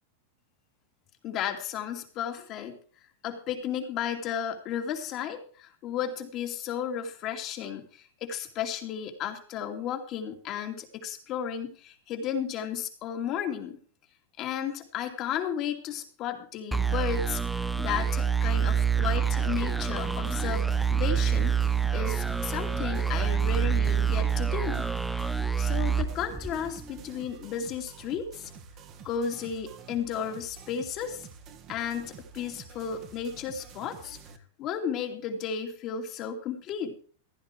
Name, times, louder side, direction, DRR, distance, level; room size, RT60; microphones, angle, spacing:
voice 1, 1.2-2.8 3.2-13.8 14.4-24.9 25.6-28.5 29.0-31.3 31.7-34.2 34.6-36.9, left 8 dB, 40° left, 4 dB, 2.6 m, -34 dB
sound 1, 16.7-27.0, right 7 dB, ahead, 0.9 m, -27 dB
sound 2, 20.0-34.4, right 6 dB, 40° right, 1.9 m, -49 dB
15.5 x 9.7 x 4.7 m, 0.42 s
hypercardioid pair, 120°, 0 cm